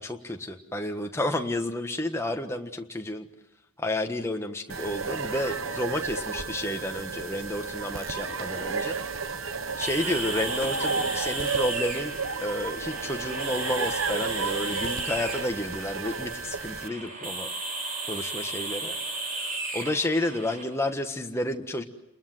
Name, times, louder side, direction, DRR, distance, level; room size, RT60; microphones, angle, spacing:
voice 1, 0.0-3.3 3.8-9.0 9.8-17.5 18.1-18.9 19.7-21.8, left 1 dB, 10° left, 4 dB, 1.4 m, -31 dB
sound 1, 4.7-16.9, right 4 dB, 65° right, 1.1 m, -32 dB
sound 2, 5.0-15.8 16.2-16.3 17.1-17.2 17.7-17.8 19.1-19.4, equal, 40° left, 3.3 m, -48 dB
sound 3, 9.8-20.6, right 2 dB, 35° right, 4.2 m, -35 dB
29.0 x 21.5 x 7.8 m, 0.88 s
head